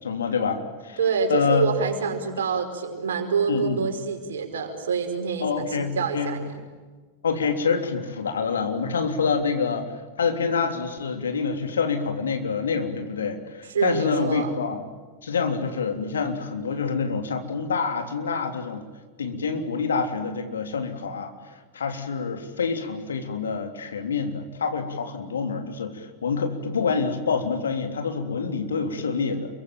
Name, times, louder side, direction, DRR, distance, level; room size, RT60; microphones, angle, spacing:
voice 1, 0.0-1.0 1.3-1.6 3.5-3.8 5.4-6.3 7.2-9.9 10.2-14.8 15.2-18.8 19.2-29.6, left 5 dB, 70° left, 5 dB, 3.3 m, -27 dB
voice 2, 1.0-6.5 13.7-14.5, right 5 dB, 65° right, 4 dB, 5.1 m, -26 dB
28.0 x 23.5 x 9.0 m, 1.4 s
figure-of-eight pair, 90°, 0 cm